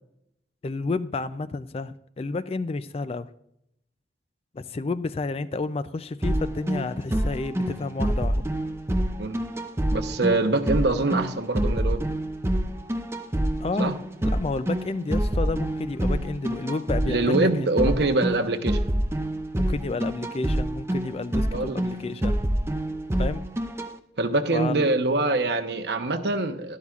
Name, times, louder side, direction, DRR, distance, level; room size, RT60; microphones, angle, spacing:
voice 1, 0.6-3.3 4.5-8.4 13.6-17.7 19.6-22.4 23.2-23.5 24.5-24.8, left 3 dB, 35° left, 14 dB, 0.4 m, -31 dB
sound 1, 6.2-23.9, right 1 dB, 15° right, 0.6 m, -27 dB
voice 2, 9.9-12.0 13.8-13.9 17.1-18.8 21.5-21.8 24.2-26.8, right 2 dB, 65° right, 8 dB, 0.9 m, -24 dB
12.0 x 11.5 x 2.4 m, 0.77 s
head